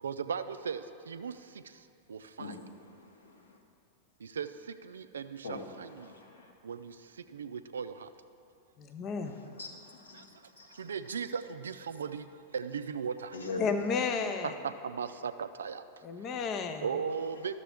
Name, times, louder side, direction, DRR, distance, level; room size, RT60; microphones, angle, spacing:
voice 1, 0.0-1.3 2.1-2.6 4.2-4.5 4.8-6.1 6.6-6.9 7.3-8.1 10.8-12.3 12.5-13.3 14.6-15.8 16.8-17.5, right 6 dB, 70° right, 11 dB, 0.3 m, -37 dB
voice 2, 2.4-3.6 5.4-6.5 9.2-10.9 13.3-13.7 17.4-17.5, left 4 dB, 70° left, 2 dB, 1.1 m, -43 dB
voice 3, 8.8-9.4 13.6-14.5 16.0-16.9, left 5 dB, 35° left, 7 dB, 0.6 m, -32 dB
12.5 x 6.6 x 3.4 m, 2.5 s
figure-of-eight pair, 90°, 0 cm